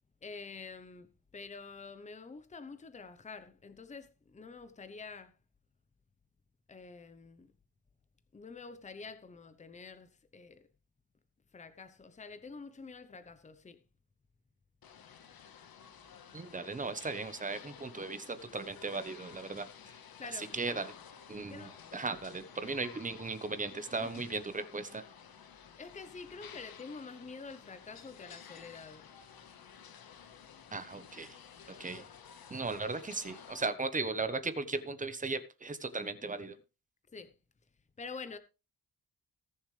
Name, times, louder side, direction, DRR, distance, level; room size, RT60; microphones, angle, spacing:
voice 1, 0.2-5.3 6.7-7.5 8.3-10.6 11.5-13.8 20.2-20.5 21.5-21.7 22.1-22.2 24.0-24.1 25.8-29.1 31.9-32.0 37.1-37.3 38.0-38.4, left 4 dB, 20° left, 0.9 m, -47 dB
sound 1, 14.8-33.6, left 7 dB, 80° left, 1.5 m, -53 dB
voice 2, 16.3-20.0 20.3-20.9 21.3-25.0 30.7-31.4 31.8-32.0 32.5-36.6, right 3 dB, 20° right, 1.0 m, -37 dB
19.5 x 7.2 x 3.3 m
wide cardioid pair, 180°, 36 cm